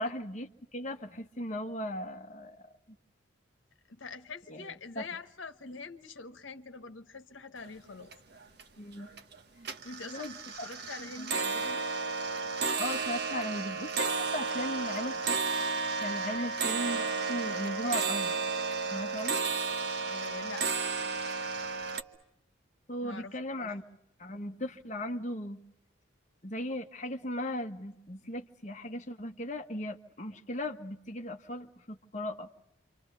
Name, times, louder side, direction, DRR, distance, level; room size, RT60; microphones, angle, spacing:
voice 1, 0.0-2.6 2.9-3.0 4.5-5.0 8.8-9.1 10.0-10.3 10.6-10.7 11.2-11.3 12.8-15.4 16.0-18.3 18.9-19.4 22.9-23.8 24.2-25.6 26.4-32.5, left 1 dB, 35° left, 1.2 m, -37 dB
voice 2, 3.9-8.1 9.8-11.9 16.3-16.5 20.1-20.7 23.0-23.7, left 4 dB, 75° left, 1.2 m, -45 dB
sound 1, 7.6-7.7 8.0-8.6 9.0-9.4 9.6-22.0, right 4 dB, 55° right, 1.2 m, -33 dB
28.0 x 26.0 x 6.8 m
head